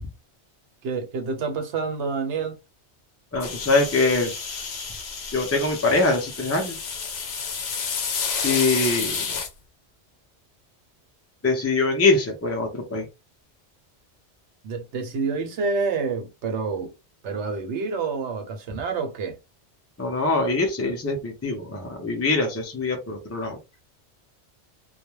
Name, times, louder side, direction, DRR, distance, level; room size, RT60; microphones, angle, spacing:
voice 1, 0.8-2.6 14.6-16.9 17.2-19.4, right 4 dB, 85° right, 1.0 m, -28 dB
voice 2, 3.3-4.3 5.3-6.8 8.4-9.3 11.4-13.1 20.0-23.6, left 3 dB, 25° left, 0.3 m, -23 dB
sound 1, 3.4-9.5, left 5 dB, 70° left, 0.9 m, -30 dB
2.3 x 2.1 x 3.0 m
omnidirectional pair, 1.2 m